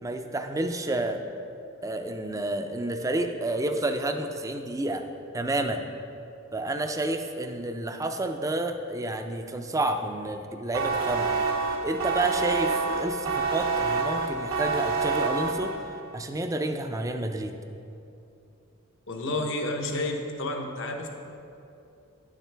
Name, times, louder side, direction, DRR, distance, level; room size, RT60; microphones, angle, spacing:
voice 1, 0.0-1.2 1.8-5.0 5.3-5.8 6.5-11.3 11.8-15.8 16.1-17.5, right 2 dB, 15° right, 6 dB, 0.4 m, -30 dB
sound 1, 10.7-16.0, right 4 dB, 75° right, 0.9 m, -27 dB
voice 2, 19.1-21.1, left 2 dB, 65° left, 2 dB, 0.9 m, -30 dB
9.9 x 7.4 x 3.4 m, 2.8 s
head